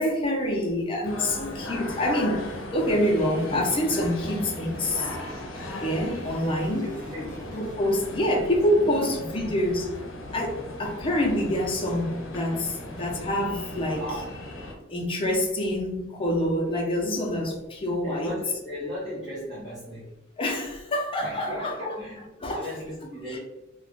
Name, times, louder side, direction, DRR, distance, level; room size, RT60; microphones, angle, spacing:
voice 1, 0.0-5.2 5.8-6.9 7.5-9.9 10.3-14.0 14.9-18.4 20.4-22.0 22.4-22.7 23.3-23.4, left 1 dB, 25° left, -1 dB, 0.6 m, -26 dB
sound 1, 1.0-14.7, left 1 dB, 85° left, 0.8 m, -37 dB
sound 2, 2.4-7.8, right 1 dB, 45° right, 0.6 m, -45 dB
voice 2, 6.8-7.6 8.8-9.2 13.9-14.3 18.0-20.1 21.2-23.4, equal, ahead, -12 dB, 1.2 m, -37 dB
2.4 x 2.2 x 3.6 m, 0.98 s
head